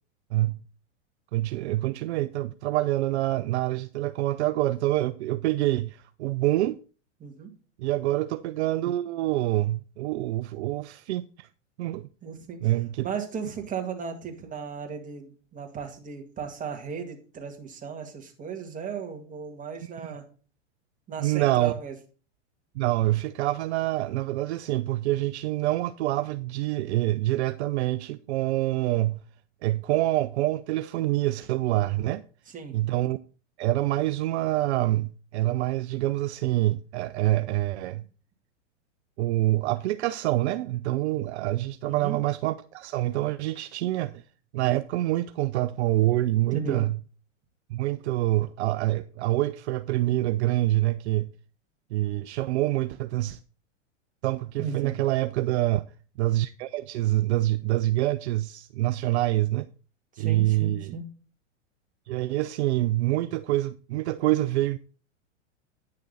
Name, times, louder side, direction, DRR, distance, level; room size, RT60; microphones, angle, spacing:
voice 1, 1.3-6.8 7.8-11.5 11.8-12.1 12.6-13.1 19.8-20.1 21.2-21.7 22.8-29.2 29.6-32.2 32.7-33.2 33.6-38.0 39.2-44.2 44.5-47.0 47.7-51.3 51.9-53.4 54.2-55.9 56.2-59.7 60.2-60.9 62.1-64.8, right 16 dB, 60° right, 0.5 m, -26 dB
voice 2, 12.2-12.6 13.0-20.3 21.1-21.9 32.5-32.8 41.8-42.2 46.5-46.8 54.6-55.0 60.1-61.0, right 6 dB, 20° right, 2.0 m, -35 dB
9.7 x 6.6 x 3.9 m
hypercardioid pair, 115°, 37 cm